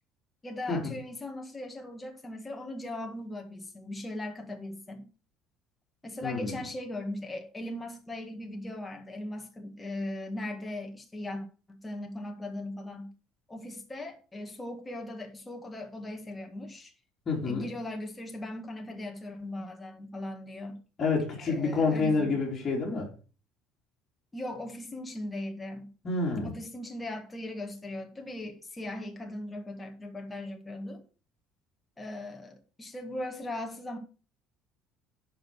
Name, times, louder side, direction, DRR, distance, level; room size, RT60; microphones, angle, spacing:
voice 1, 0.4-5.1 6.0-13.1 13.5-16.9 17.4-20.8 21.5-22.3 24.3-25.9 26.4-31.0 32.0-34.0, left 1 dB, 15° left, 1.8 m, -39 dB
voice 2, 6.2-6.5 17.3-17.7 21.0-23.1 26.0-26.5, left 4 dB, 30° left, 3.3 m, -28 dB
8.8 x 5.7 x 6.3 m
cardioid pair, 120°, 0 cm